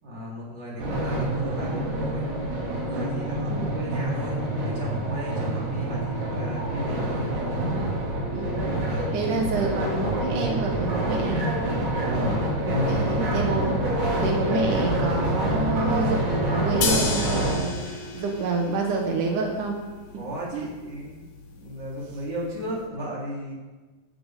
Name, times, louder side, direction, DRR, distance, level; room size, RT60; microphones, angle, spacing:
voice 1, 0.0-2.3 2.8-7.2 8.8-9.2 12.0-13.4 13.7-13.8 20.1-21.3 21.6-23.5, left 1 dB, 35° right, -5 dB, 4.4 m, -34 dB
sound 1, 0.8-17.5, right 1 dB, 70° right, 4.1 m, -27 dB
voice 2, 9.1-11.4 12.9-19.8 20.5-20.7, right 3 dB, 85° right, 2 dB, 2.9 m, -28 dB
sound 2, 16.8-22.8, left 4 dB, 60° left, 2.5 m, -34 dB
18.0 x 12.0 x 3.7 m, 1.3 s
omnidirectional pair, 3.5 m